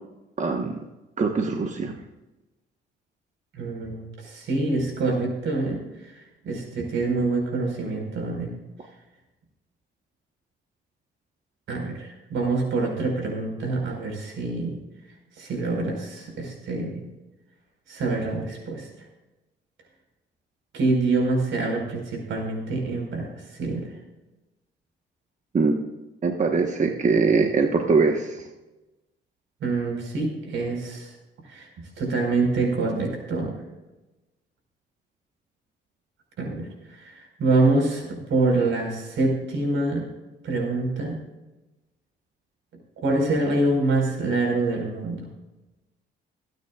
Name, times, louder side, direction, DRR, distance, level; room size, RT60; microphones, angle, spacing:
voice 1, 0.4-0.7 1.2-1.9 25.5-25.7 26.2-28.4, right 4 dB, 40° right, 3 dB, 1.2 m, -22 dB
voice 2, 3.5-8.5 11.7-14.8 15.4-17.0 17.9-19.1 20.7-23.9 29.6-31.1 31.4-31.7 32.0-33.5 36.4-40.0 40.4-41.1 43.0-45.3, right 2 dB, 75° right, 1 dB, 4.6 m, -26 dB
27.0 x 9.2 x 2.4 m, 1.0 s
cardioid pair, 90°, 20 cm